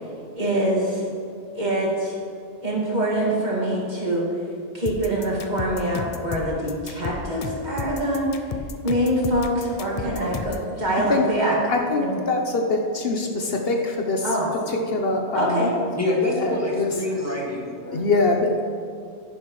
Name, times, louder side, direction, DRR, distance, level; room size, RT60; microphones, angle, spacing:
voice 1, 0.4-1.1 1.6-2.2 2.6-4.3 4.7-8.5 8.8-11.5 12.0-12.2 14.2-14.5 15.3-15.7, right 1 dB, 40° right, -5 dB, 2.3 m, -24 dB
sound 1, 4.9-10.7, left 4 dB, 45° left, 0.5 m, -33 dB
voice 2, 11.7-14.3 14.7-15.7 16.4-16.9 17.9-18.6, left 3 dB, 65° left, 2 dB, 1.0 m, -23 dB
voice 3, 16.0-18.4, left 2 dB, 15° left, -4 dB, 1.8 m, -26 dB
11.0 x 10.5 x 3.2 m, 2.5 s
omnidirectional pair, 1.1 m